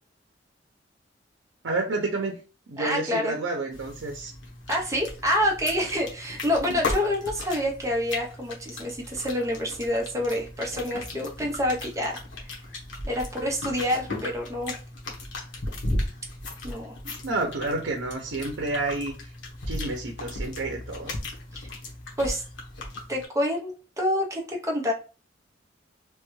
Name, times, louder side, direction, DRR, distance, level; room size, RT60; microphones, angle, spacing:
voice 1, 1.6-2.4 2.7-4.3 6.7-6.8 17.2-19.3 19.7-21.1, right 2 dB, 85° right, 2 dB, 0.6 m, -30 dB
voice 2, 2.8-3.3 4.7-12.5 13.1-14.8 16.6-17.0 21.5-21.7 22.2-22.4 23.1-24.9, left 1 dB, 15° right, 1 dB, 0.7 m, -27 dB
sound 1, 3.7-23.3, left 2 dB, 80° left, 0.9 m, -36 dB
3.1 x 2.3 x 3.1 m, 0.35 s
head